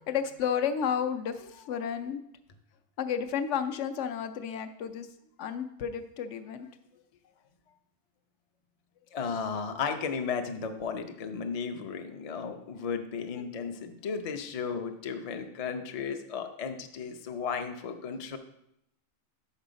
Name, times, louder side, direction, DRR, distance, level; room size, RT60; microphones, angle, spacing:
voice 1, 0.0-2.2 3.0-5.1 5.4-6.7 13.4-13.5, left 7 dB, 70° left, 8 dB, 0.8 m, -32 dB
voice 2, 9.1-18.4, left 6 dB, 50° left, 6 dB, 0.4 m, -34 dB
6.2 x 5.4 x 5.1 m, 0.78 s
omnidirectional pair, 1.4 m